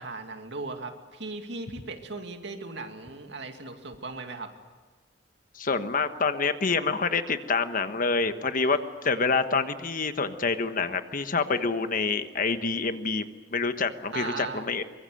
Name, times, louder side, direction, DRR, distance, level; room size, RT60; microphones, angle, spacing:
voice 1, 0.0-4.5 8.6-8.8 14.1-14.7, right 3 dB, 70° right, 5 dB, 2.5 m, -37 dB
voice 2, 5.5-14.8, left 4 dB, 50° left, 9 dB, 1.3 m, -27 dB
24.0 x 22.0 x 7.8 m, 1.4 s
head